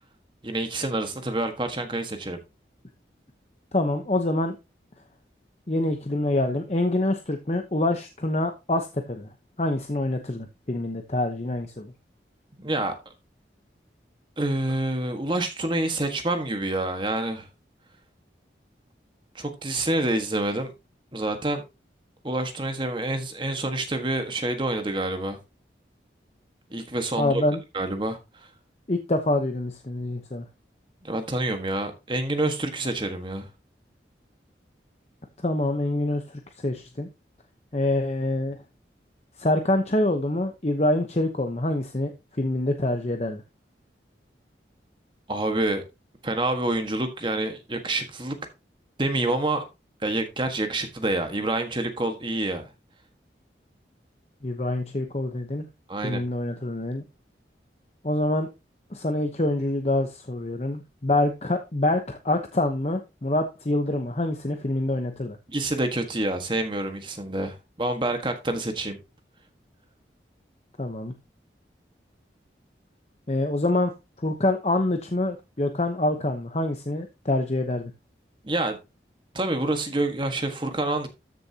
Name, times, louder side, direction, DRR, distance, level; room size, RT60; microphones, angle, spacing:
voice 1, 0.4-2.4 12.6-12.9 14.4-17.5 19.3-20.7 21.1-21.6 22.2-25.4 26.7-27.4 27.7-28.5 31.0-33.5 45.3-45.8 46.2-48.4 49.0-49.6 50.0-52.7 55.9-56.2 65.5-69.0 78.4-78.8 79.3-81.1, right 2 dB, 25° right, 1.5 m, -27 dB
voice 2, 3.7-4.6 5.7-9.3 9.6-11.9 27.2-27.6 28.9-30.4 35.4-37.1 37.7-38.6 39.4-43.4 54.4-55.6 56.0-57.0 58.0-58.5 58.9-65.4 70.8-71.1 73.3-73.9 74.2-77.9, left 1 dB, 35° left, 0.9 m, -26 dB
13.5 x 6.7 x 2.9 m
head